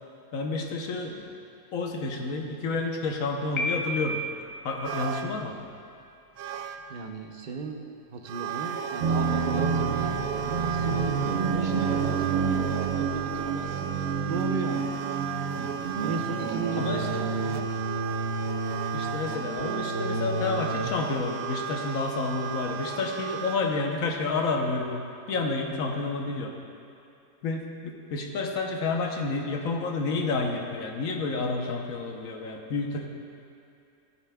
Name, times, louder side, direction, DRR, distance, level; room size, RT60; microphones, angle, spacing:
voice 1, 0.3-1.2 1.7-4.2 4.6-5.6 16.8-17.2 18.9-26.5 27.4-33.1, left 3 dB, 75° left, 2 dB, 1.3 m, -30 dB
Piano, 3.6-4.5, equal, 25° left, 0.7 m, -30 dB
sound 1, 4.8-5.3 6.0-6.1 6.4-6.8 8.2-23.6, right 8 dB, 90° right, 1.1 m, -35 dB
voice 2, 6.9-7.8 8.1-12.7 13.0-14.9 16.0-17.8, right 4 dB, 45° right, 3 dB, 0.7 m, -36 dB
sound 2, 9.0-20.9, right 4 dB, 65° right, 1.0 m, -29 dB
14.0 x 9.1 x 2.3 m, 2.7 s
omnidirectional pair, 1.5 m